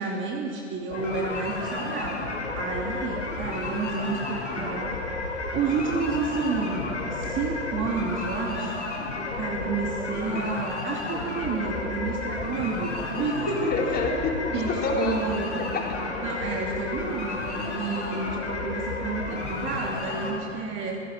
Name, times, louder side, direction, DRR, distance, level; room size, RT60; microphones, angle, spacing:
voice 1, 0.0-4.9 5.5-8.8 9.3-13.7 14.5-14.7 15.0-15.7 16.2-21.0, right 4 dB, 35° right, 0 dB, 2.9 m, -30 dB
sound 1, 0.9-20.3, left 3 dB, 80° left, 6.0 m, -32 dB
voice 2, 13.7-15.2 15.7-16.2, left 3 dB, 25° left, 0 dB, 4.1 m, -28 dB
27.0 x 17.0 x 7.7 m, 2.9 s
figure-of-eight pair, 85°, 36 cm